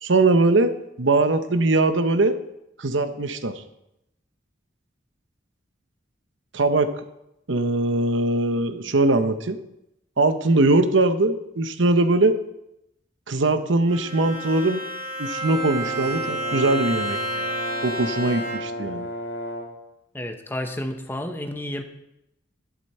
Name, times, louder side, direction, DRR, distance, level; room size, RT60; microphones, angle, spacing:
voice 1, 0.0-2.4 2.8-3.6 6.5-6.9 7.5-9.6 10.2-12.4 13.3-14.8 15.2-19.1, right 2 dB, 75° right, 9 dB, 0.9 m, -21 dB
Bowed string instrument, 13.9-18.9, right 1 dB, 45° right, 3.0 m, -31 dB
Brass instrument, 15.7-19.8, equal, 75° left, 2.6 m, -33 dB
voice 2, 20.1-21.8, left 1 dB, 10° left, 6 dB, 0.9 m, -31 dB
11.5 x 11.5 x 4.3 m, 0.85 s
head